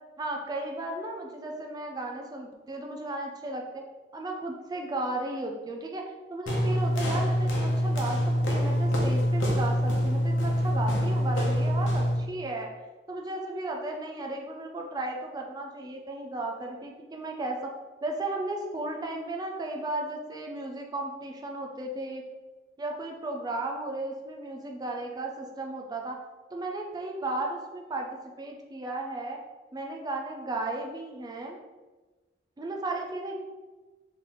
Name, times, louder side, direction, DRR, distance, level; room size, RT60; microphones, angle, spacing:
voice 1, 0.2-3.8 4.1-6.0 6.3-8.2 8.5-12.7 13.1-17.7 18.0-22.2 22.8-26.2 26.5-28.1 28.4-29.4 29.7-31.6 32.6-33.4, right 2 dB, 20° right, 2 dB, 0.3 m, -34 dB
sound 1, 6.5-12.3, equal, 80° left, 0.9 m, -25 dB
3.7 x 3.2 x 3.0 m, 1.2 s
head